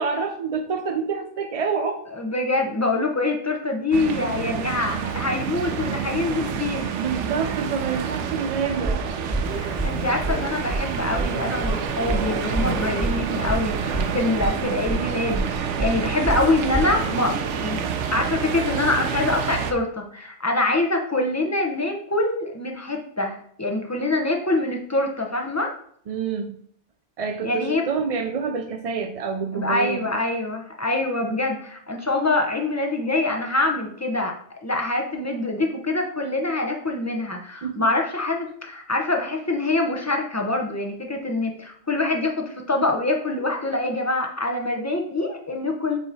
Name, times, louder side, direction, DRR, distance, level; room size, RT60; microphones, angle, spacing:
voice 1, 0.0-2.0 7.0-9.1 26.1-26.6 27.2-30.1 37.6-37.9, right 5 dB, 60° right, 6 dB, 0.3 m, -27 dB
voice 2, 2.1-6.9 9.5-17.9 18.1-25.7 27.4-27.8 29.5-34.3 34.6-46.0, left 2 dB, 15° left, 2 dB, 0.7 m, -25 dB
sound 1, 3.9-19.7, right 7 dB, 80° right, 0.9 m, -28 dB
sound 2, 8.8-17.0, right 2 dB, 20° right, 1.8 m, -28 dB
Thunder, 9.4-14.4, left 3 dB, 80° left, 1.3 m, -39 dB
8.1 x 2.9 x 4.0 m, 0.63 s
omnidirectional pair, 1.2 m